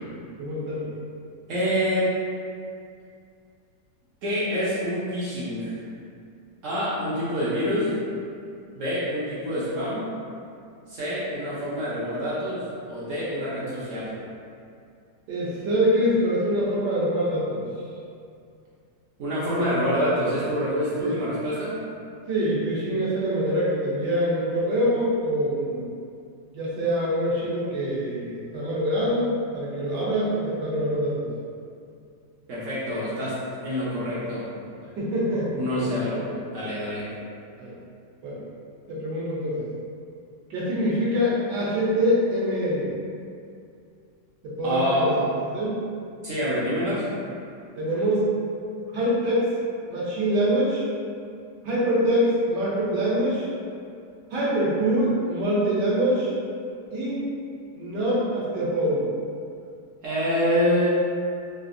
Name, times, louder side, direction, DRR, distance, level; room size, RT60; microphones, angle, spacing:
voice 1, 0.4-0.9 15.3-17.7 21.0-21.2 22.3-25.9 26.5-31.3 34.9-35.8 36.1-36.4 37.6-37.7 38.2-38.4 38.9-39.7 40.5-42.9 44.4-45.9 47.8-48.3 48.9-49.5 49.9-50.8 51.6-53.5 54.3-56.3 56.9-57.2 57.7-59.1, equal, 75° right, -7 dB, 1.3 m, -24 dB
voice 2, 1.5-2.1 4.2-5.8 6.6-7.9 8.7-10.1 10.9-14.1 19.2-21.8 32.5-34.4 35.5-36.2 36.5-37.1 44.6-45.3 46.2-47.0 60.0-60.9, equal, 60° right, -9 dB, 0.9 m, -26 dB
3.6 x 2.4 x 2.5 m, 2.4 s
omnidirectional pair, 1.9 m